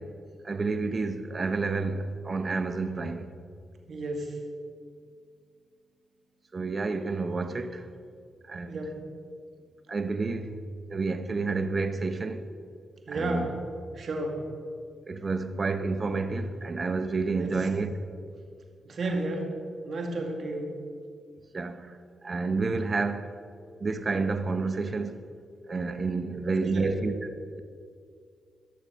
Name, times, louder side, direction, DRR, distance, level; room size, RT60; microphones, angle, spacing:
voice 1, 0.4-3.3 6.5-7.9 8.4-8.8 9.9-12.5 13.1-13.4 15.1-17.9 21.5-22.0 22.2-23.3 23.8-25.2 25.7-27.1, right 3 dB, 40° right, 0.9 m, -30 dB
voice 2, 3.9-4.4 8.7-9.0 13.1-13.6 13.9-14.4 17.4-17.5 18.8-19.6 19.8-20.7 26.5-27.1, right 2 dB, 60° right, 2.0 m, -32 dB
14.0 x 6.9 x 5.6 m
supercardioid pair, 55°, 0 cm